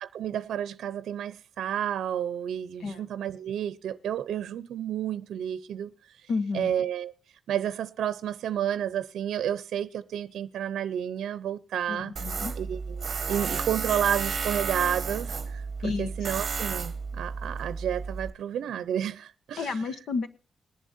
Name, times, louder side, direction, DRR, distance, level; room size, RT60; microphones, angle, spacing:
voice 1, 0.0-5.9 6.5-7.1 7.5-12.1 12.6-19.8, right 10 dB, 90° right, 0.6 m, -31 dB
voice 2, 6.3-6.7 11.9-12.5 15.8-16.1 19.6-20.3, left 4 dB, 65° left, 1.1 m, -31 dB
Tools, 12.2-18.3, right 5 dB, 30° right, 1.3 m, -32 dB
21.0 x 11.0 x 2.6 m
wide cardioid pair, 180°, 0 cm